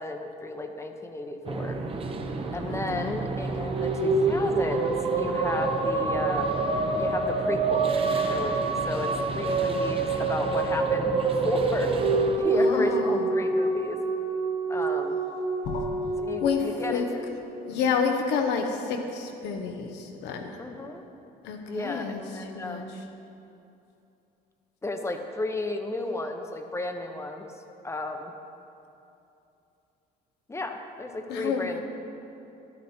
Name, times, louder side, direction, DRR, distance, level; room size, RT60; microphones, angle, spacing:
voice 1, 0.0-1.8 2.5-6.6 7.0-7.9 8.2-11.9 12.4-14.0 14.7-15.2 16.2-17.2 20.6-21.0 21.7-22.9 24.8-27.5 27.8-28.3 30.5-31.8, left 2 dB, 15° left, 5 dB, 0.9 m, -33 dB
sound 1, 1.4-12.4, right 3 dB, 35° right, 0.9 m, -34 dB
sound 2, 3.4-17.8, right 3 dB, 60° right, 2.2 m, -27 dB
voice 2, 12.5-13.3 15.6-17.1 17.6-20.5 21.4-22.2 22.5-22.8 31.3-31.8, left 5 dB, 90° left, 4 dB, 1.1 m, -29 dB
11.5 x 9.7 x 4.4 m, 2.8 s
cardioid pair, 110°, 17 cm